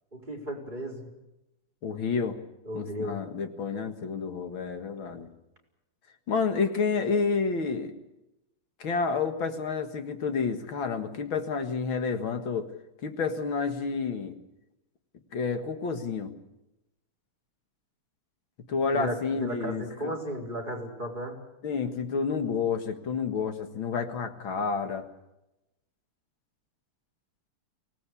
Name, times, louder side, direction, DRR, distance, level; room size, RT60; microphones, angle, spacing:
voice 1, 0.1-1.1 2.6-3.2 18.9-21.4, equal, 20° right, -1 dB, 4.6 m, -35 dB
voice 2, 1.8-2.4 2.8-5.3 6.3-7.9 8.8-12.7 13.0-14.3 15.3-16.3 18.7-20.1 21.6-25.0, left 5 dB, 65° left, 7 dB, 2.4 m, -29 dB
24.5 x 18.0 x 8.4 m, 0.93 s
omnidirectional pair, 2.4 m